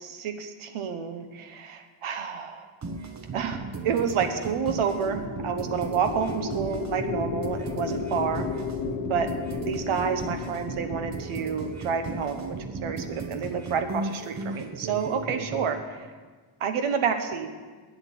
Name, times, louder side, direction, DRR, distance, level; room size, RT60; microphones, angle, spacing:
voice 1, 0.0-2.7 3.3-8.5 9.1-9.3 9.6-15.8 16.6-17.5, right 6 dB, 80° right, 7 dB, 1.2 m, -29 dB
sound 1, 2.8-15.7, right 3 dB, 35° right, 1.0 m, -36 dB
sound 2, 4.6-13.0, left 5 dB, 70° left, 1.0 m, -35 dB
8.4 x 7.8 x 8.5 m, 1.4 s
cardioid pair, 110°, 49 cm